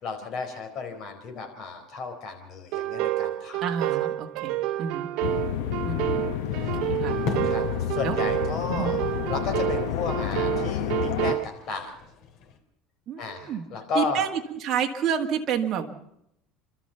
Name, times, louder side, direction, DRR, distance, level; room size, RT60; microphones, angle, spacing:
voice 1, 0.0-3.6 4.0-4.1 5.3-5.4 6.5-6.8 7.4-9.0 9.3-11.9 13.2-14.2, left 4 dB, 45° left, 5 dB, 4.4 m, -33 dB
sound 1, 2.7-11.4, right 15 dB, 65° right, 0.8 m, -29 dB
voice 2, 3.6-5.1 5.8-6.3 6.8-7.2 8.0-8.2 8.7-9.0 13.1-13.7 13.9-15.9, right 8 dB, 35° right, 1 dB, 1.9 m, -29 dB
sound 2, 5.2-11.3, left 12 dB, 85° left, 0.9 m, -30 dB
sound 3, 6.6-12.6, left 4 dB, 65° left, 3.2 m, -40 dB
29.5 x 13.0 x 7.0 m, 0.80 s
cardioid pair, 145°, 0 cm